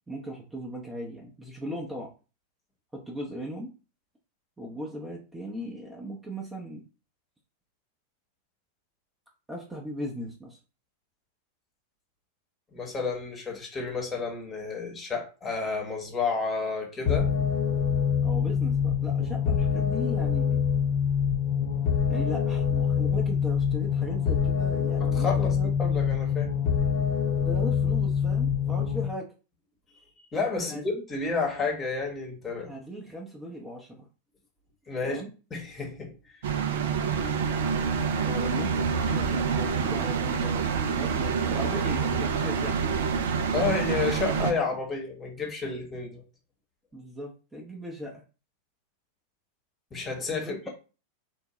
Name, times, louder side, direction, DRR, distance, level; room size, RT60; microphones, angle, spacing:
voice 1, 0.1-2.1 2.9-3.7 4.6-6.8 9.5-10.6 18.2-20.6 22.1-25.7 27.4-29.3 30.6-30.8 32.6-34.1 35.0-35.3 38.3-42.8 46.9-48.2 50.4-50.7, equal, 10° right, 0.7 m, -38 dB
voice 2, 12.7-17.3 25.0-25.5 25.8-26.5 30.3-32.7 34.9-35.2 35.5-36.5 43.5-46.2 49.9-50.7, left 4 dB, 20° left, 1.0 m, -31 dB
sound 1, 17.1-29.1, left 7 dB, 40° left, 0.8 m, -25 dB
sound 2, 36.4-44.5, right 6 dB, 55° right, 0.3 m, -27 dB
3.5 x 2.2 x 2.9 m
figure-of-eight pair, 90°, 0 cm